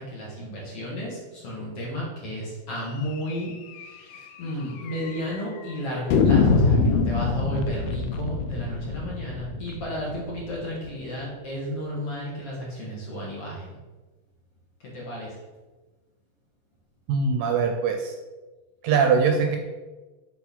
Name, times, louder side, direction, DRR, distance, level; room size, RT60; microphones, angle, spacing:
voice 1, 0.0-13.8 14.8-15.4, equal, 50° left, -5 dB, 2.0 m, -33 dB
sound 1, 3.3-3.4 3.7-3.8 4.1-4.2 4.9-5.4 6.1-10.9, left 4 dB, 90° left, 2.6 m, -24 dB
voice 2, 17.1-18.1 18.8-19.6, right 5 dB, 75° right, 4 dB, 2.1 m, -22 dB
8.3 x 4.4 x 5.9 m, 1.2 s
omnidirectional pair, 4.4 m